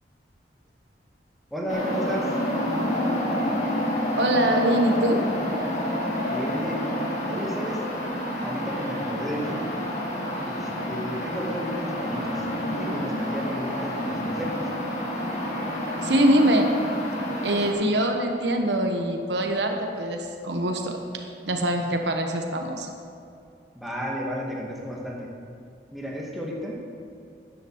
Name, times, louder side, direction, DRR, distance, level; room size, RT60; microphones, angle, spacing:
voice 1, 1.5-2.4 6.3-7.0 7.3-7.8 8.4-9.6 10.5-14.6 23.8-25.3 25.9-26.8, equal, ahead, -3 dB, 1.8 m, -33 dB
sound 1, 1.7-17.7, left 1 dB, 40° left, 2.2 m, -29 dB
voice 2, 4.2-5.3 16.0-16.8 17.4-21.0 21.4-22.9, right 1 dB, 80° right, 3 dB, 1.3 m, -23 dB
13.5 x 10.5 x 4.7 m, 2.5 s
head